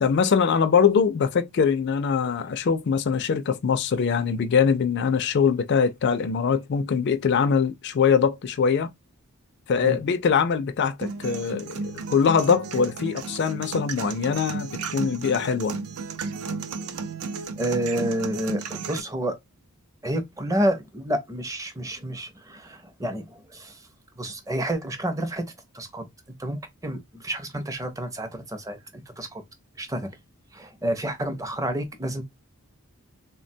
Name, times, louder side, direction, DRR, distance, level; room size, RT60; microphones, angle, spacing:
voice 1, 0.0-8.9 9.7-11.7 12.1-15.8, left 6 dB, 50° left, 0.4 m, -22 dB
sound 1, 11.0-19.0, right 4 dB, 80° right, 0.4 m, -33 dB
voice 2, 17.6-19.4 20.0-23.8 24.2-25.4 25.7-26.0 26.4-28.8 29.2-29.4 29.8-30.1 30.5-32.2, right 1 dB, 15° right, 0.5 m, -29 dB
3.2 x 2.1 x 2.5 m
head